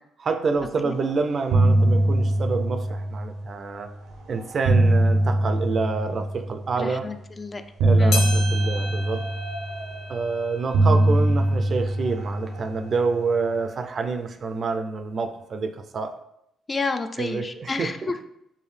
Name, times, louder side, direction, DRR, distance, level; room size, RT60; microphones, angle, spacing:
voice 1, 0.2-3.9 4.3-7.1 7.8-9.2 10.1-16.2 17.2-17.9, right 4 dB, 50° right, 8 dB, 0.4 m, -27 dB
sound 1, 0.8-1.1 1.3-3.7 4.3-6.8 7.8-10.2 10.7-13.3, right 1 dB, 90° right, 0.7 m, -22 dB
voice 2, 6.8-7.6 8.0-8.4 16.7-18.2, left 3 dB, 30° left, 8 dB, 0.3 m, -30 dB
sound 2, 8.1-12.8 13.3-13.4 14.2-14.3 15.2-15.3, left 2 dB, 75° left, 0.7 m, -36 dB
4.6 x 2.6 x 3.2 m, 0.79 s
cardioid pair, 90°, 0 cm